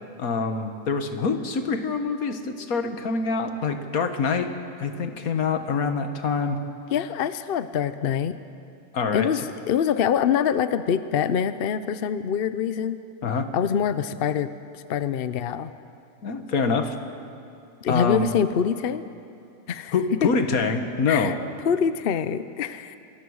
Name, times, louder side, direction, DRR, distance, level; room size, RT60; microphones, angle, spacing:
voice 1, 0.2-4.5 4.8-6.6 8.9-9.3 13.2-13.5 16.2-17.0 17.9-18.3 19.9-21.4, left 4 dB, 80° left, 7 dB, 1.8 m, -25 dB
voice 2, 6.9-8.3 9.1-9.4 9.7-13.0 13.5-14.5 14.9-15.7 17.8-19.0 19.7-19.9 21.1-21.4 21.6-23.0, left 8 dB, 55° left, 12 dB, 0.7 m, -24 dB
25.5 x 18.0 x 6.4 m, 2.5 s
omnidirectional pair, 1.5 m